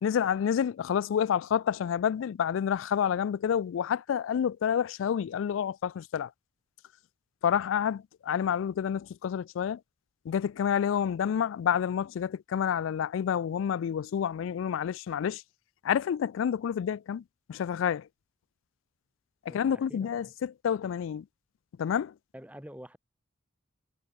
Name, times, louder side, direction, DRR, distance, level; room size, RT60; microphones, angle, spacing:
voice 1, 0.0-6.3 7.4-9.8 10.2-15.4 15.8-18.1 19.5-21.3 21.8-22.2, left 8 dB, 70° left, 0.3 m, -29 dB
voice 2, 19.5-20.3 22.3-23.0, equal, 5° right, 4.6 m, -47 dB
head